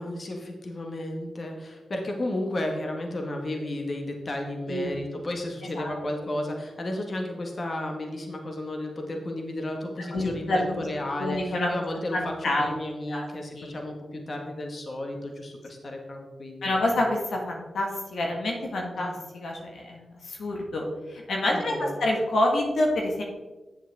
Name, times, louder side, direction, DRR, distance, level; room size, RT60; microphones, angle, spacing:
voice 1, 0.0-16.8 19.0-19.1 21.5-22.0, left 1 dB, 50° left, 2 dB, 1.5 m, -33 dB
voice 2, 4.7-5.0 5.7-5.9 10.1-10.7 11.2-11.7 12.1-12.7 13.1-13.3 13.5-13.7 16.6-23.2, left 1 dB, 75° left, 0 dB, 1.5 m, -27 dB
8.9 x 8.0 x 3.5 m, 1.2 s
cardioid pair, 45°, 0 cm